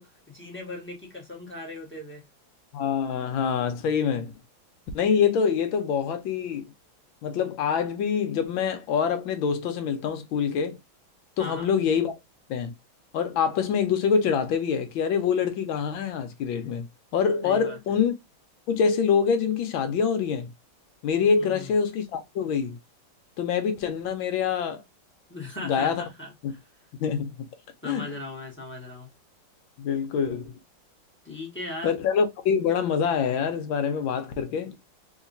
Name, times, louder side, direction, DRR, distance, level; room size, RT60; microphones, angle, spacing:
voice 1, 0.0-2.2 6.0-6.1 11.4-11.7 17.4-18.0 21.5-21.7 25.3-26.6 27.8-29.1 31.2-31.9, left 2 dB, 5° left, 1.2 m, -38 dB
voice 2, 2.7-4.3 4.9-6.7 7.2-10.8 11.4-12.1 12.5-12.7 13.1-16.9 17.1-18.1 18.7-20.5 21.0-22.8 23.4-24.8 25.6-26.0 26.4-26.5 27.0-27.3 27.8-28.0 29.8-30.5 31.8-34.8, left 6 dB, 75° left, 1.4 m, -25 dB
3.8 x 2.8 x 2.6 m
omnidirectional pair, 2.2 m